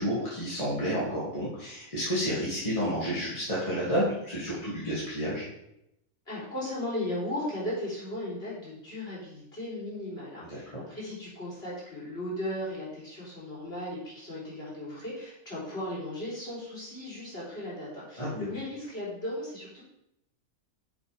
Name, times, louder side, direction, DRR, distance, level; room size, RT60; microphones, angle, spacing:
voice 1, 0.0-5.4 10.4-10.8 18.2-18.5, equal, 20° left, -10 dB, 2.5 m, -30 dB
voice 2, 6.3-19.8, left 1 dB, 40° left, -8 dB, 4.0 m, -36 dB
9.2 x 6.9 x 3.5 m, 0.82 s
omnidirectional pair, 1.6 m